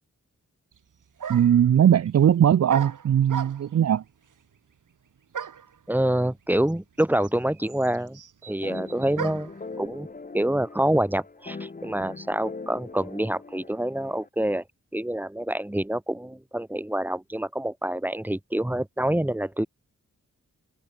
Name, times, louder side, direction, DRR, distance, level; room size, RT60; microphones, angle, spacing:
sound 1, 0.7-0.8 1.2-1.7 2.7-3.8 5.3-5.7 6.7-6.8 7.0-9.6, right 7 dB, 85° right, 2.4 m, -36 dB
voice 1, 1.3-4.0, right 9 dB, 55° right, 0.5 m, -19 dB
voice 2, 5.9-8.2 8.5-9.5 9.8-10.1 10.3-14.6 14.9-19.7, right 1 dB, 5° right, 2.5 m, -26 dB
sound 2, 8.6-14.3, left 3 dB, 30° left, 2.2 m, -41 dB
wide cardioid pair, 175°, 31 cm